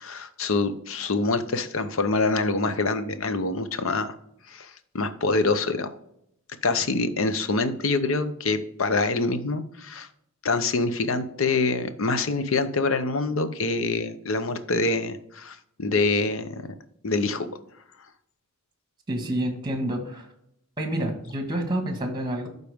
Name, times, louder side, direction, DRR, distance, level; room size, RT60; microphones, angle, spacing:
voice 1, 0.0-4.1 4.5-5.9 6.6-10.1 10.4-16.6 17.0-17.5, left 3 dB, 65° left, 11 dB, 0.7 m, -25 dB
voice 2, 19.1-20.3 20.8-22.5, right 1 dB, 20° right, 5 dB, 1.5 m, -28 dB
12.0 x 4.1 x 3.5 m, 0.74 s
head